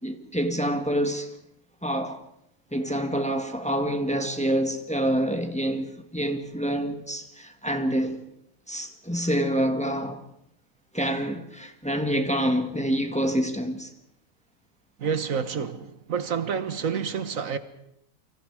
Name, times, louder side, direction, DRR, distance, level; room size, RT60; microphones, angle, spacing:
voice 1, 0.0-1.3 1.8-2.2 2.7-8.2 8.7-10.2 10.9-13.9, equal, 5° left, 1.8 m, -27 dB
voice 2, 15.0-17.6, right 6 dB, 80° right, 1.7 m, -28 dB
30.0 x 25.5 x 4.9 m
omnidirectional pair, 1.4 m